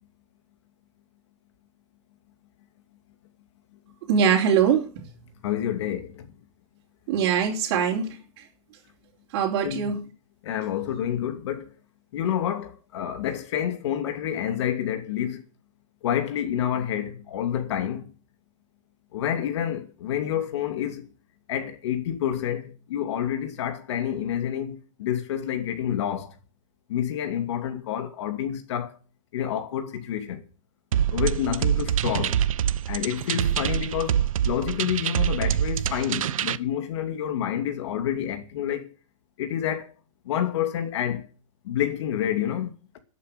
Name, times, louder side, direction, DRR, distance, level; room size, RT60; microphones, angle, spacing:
voice 1, 4.1-5.0 7.1-8.1 9.3-10.1, right 7 dB, 40° right, 3.6 m, -22 dB
voice 2, 5.4-6.3 9.6-9.9 10.4-11.7 12.1-15.4 16.0-18.1 19.1-21.1 21.5-26.3 26.9-29.0 29.3-30.4 31.1-32.4 32.9-38.9 39.4-39.9 40.2-41.3 41.6-43.0, left 10 dB, 55° left, 2.6 m, -28 dB
sound 1, 30.9-36.6, right 10 dB, 90° right, 0.9 m, -25 dB
13.0 x 8.5 x 8.6 m
supercardioid pair, 170°, 17 cm